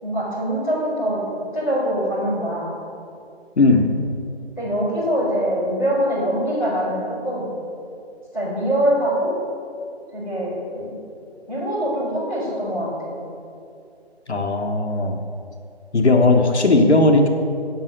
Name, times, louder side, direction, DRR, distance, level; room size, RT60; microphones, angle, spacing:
voice 1, 0.0-1.2 1.5-2.7 4.6-7.5 8.3-9.3 10.1-11.0 11.5-13.1, equal, 5° left, -17 dB, 3.1 m, -23 dB
voice 2, 3.6-3.9 14.3-15.2 15.9-17.3, left 2 dB, 85° left, 3 dB, 1.4 m, -16 dB
8.8 x 8.7 x 6.5 m, 2.5 s
figure-of-eight pair, 170°, 33 cm